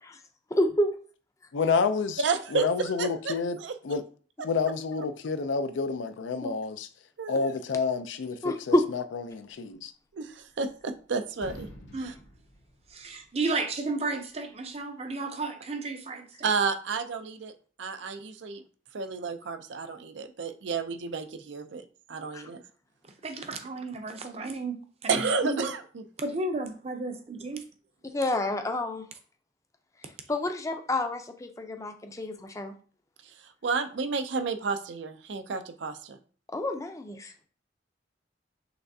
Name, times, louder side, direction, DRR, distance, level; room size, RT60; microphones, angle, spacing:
voice 1, 0.6-0.9 6.4-6.5 8.4-8.8 22.3-22.4 28.0-29.0 30.3-32.7 36.5-37.3, left 1 dB, 15° left, 0.5 m, -28 dB
voice 2, 1.5-2.2 2.5-3.6 3.8-4.0 4.4-6.9 7.3-9.9, left 5 dB, 85° left, 0.4 m, -29 dB
voice 3, 2.2-3.7 7.2-7.5 10.1-11.7 12.0-12.1 16.4-17.5 17.8-18.6 18.9-22.6 25.1-26.0 33.6-36.2, right 5 dB, 75° right, 0.5 m, -31 dB
sound 1, 10.2-11.0 11.3-13.4, equal, 70° left, 1.1 m, -48 dB
voice 4, 12.9-16.5 23.2-25.7 26.2-27.6, right 3 dB, 35° right, 0.6 m, -33 dB
5.9 x 3.3 x 2.7 m
head